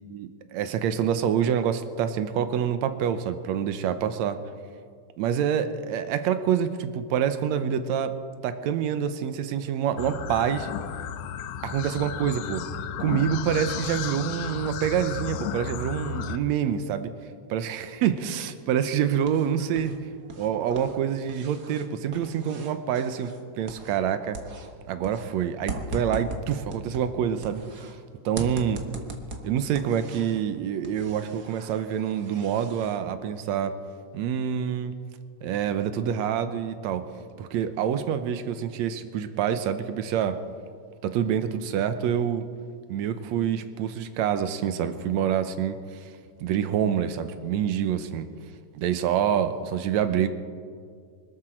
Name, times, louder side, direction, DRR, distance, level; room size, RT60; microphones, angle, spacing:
voice 1, 0.1-4.4 5.2-8.2 8.4-10.7 11.6-12.6 13.0-17.1 17.5-19.9 20.4-24.4 24.9-27.6 28.3-28.8 29.1-29.2 29.4-33.8 34.1-34.9 35.4-37.1 37.4-40.4 41.0-42.5 42.9-46.1 46.4-48.3 48.8-50.3, right 8 dB, 75° right, 10 dB, 2.1 m, -26 dB
sound 1, 10.0-16.4, left 9 dB, 80° left, 2.0 m, -34 dB
sound 2, 18.8-20.0 20.2-24.1 24.3-27.9 28.4-30.5 30.8-33.0, right 2 dB, 50° right, 1.3 m, -39 dB
24.5 x 12.5 x 4.5 m, 2.1 s
omnidirectional pair, 3.3 m